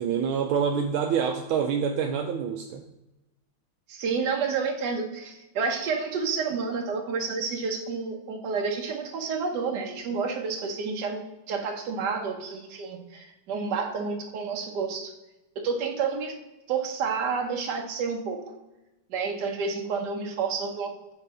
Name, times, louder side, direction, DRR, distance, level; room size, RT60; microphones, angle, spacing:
voice 1, 0.0-2.9, right 7 dB, 80° right, 4 dB, 1.4 m, -26 dB
voice 2, 3.9-15.1 15.6-16.3 16.7-18.4 19.1-21.1, right 5 dB, 60° right, 2 dB, 1.5 m, -30 dB
5.2 x 4.0 x 5.5 m, 0.98 s
omnidirectional pair, 2.3 m